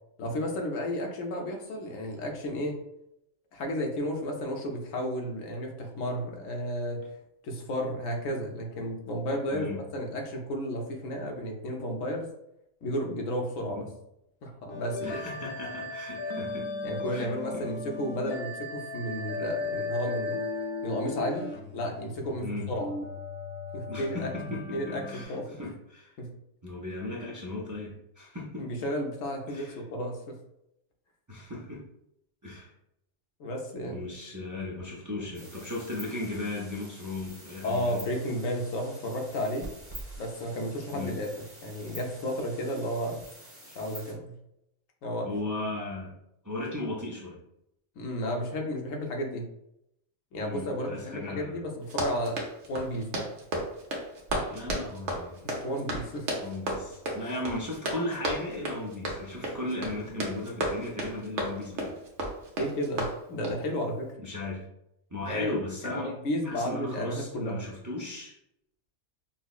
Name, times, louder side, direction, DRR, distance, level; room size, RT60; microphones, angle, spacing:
voice 1, 0.2-2.8 3.5-7.0 7.4-12.3 12.8-13.9 14.4-15.2 16.8-20.4 20.8-22.9 23.7-24.3 24.7-25.6 26.2-26.3 28.6-30.4 33.4-34.0 37.6-39.7 40.2-41.3 41.6-43.3 43.8-44.3 45.0-45.3 48.0-49.5 50.3-52.4 52.7-53.3 55.4-56.3 62.6-64.1 65.3-65.5 65.8-67.6, equal, 80° left, 1 dB, 1.1 m, -32 dB
sound 1, 14.7-25.2, left 3 dB, 60° left, 0.7 m, -36 dB
voice 2, 15.0-16.7 17.1-17.3 22.4-22.7 23.9-26.1 26.6-28.7 29.5-29.8 31.3-31.8 32.4-32.7 33.9-38.0 40.9-41.2 45.2-46.1 46.4-47.4 50.4-51.6 54.5-55.4 56.4-61.9 64.2-64.6 65.1-66.1 66.4-68.3, left 2 dB, 30° right, -4 dB, 0.3 m, -36 dB
sound 2, 35.3-44.1, right 1 dB, 10° right, 0.9 m, -47 dB
Run, 51.8-63.6, right 1 dB, 65° right, 1.1 m, -34 dB
5.4 x 2.0 x 2.4 m, 0.80 s
omnidirectional pair, 1.3 m